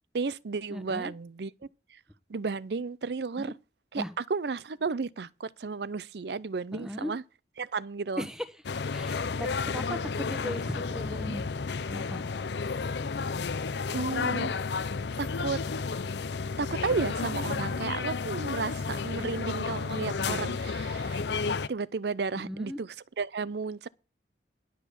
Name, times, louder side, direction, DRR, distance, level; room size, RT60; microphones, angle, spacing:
voice 1, 0.1-1.5 1.9-2.0 2.3-3.5 3.9-7.2 7.6-8.3 13.9-14.5 15.2-15.6 16.6-21.2 21.7-23.9, right 4 dB, 70° right, 0.5 m, -33 dB
voice 2, 0.7-1.1 3.4-3.5 4.0-4.1 6.7-7.1 8.2-8.5 8.9-11.4 11.9-12.2 22.3-22.8, equal, 5° right, 1.1 m, -37 dB
sound 1, 8.6-21.7, left 4 dB, 75° left, 0.6 m, -32 dB
11.5 x 6.3 x 6.9 m
head